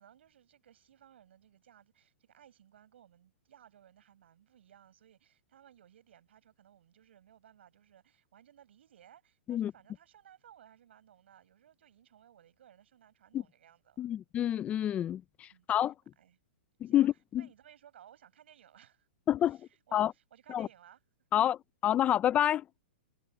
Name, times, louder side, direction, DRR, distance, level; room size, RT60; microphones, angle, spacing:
voice 1, 0.0-14.1 15.5-15.7 16.2-16.4 16.8-17.1 17.3-19.1 19.4-21.0, right 10 dB, 70° right, 7.9 m, -60 dB
voice 2, 14.0-15.9 16.8-17.5 19.3-20.1 20.5-20.7 21.3-22.7, left 11 dB, 20° left, 0.6 m, -29 dB
hypercardioid pair, 145°, 6 cm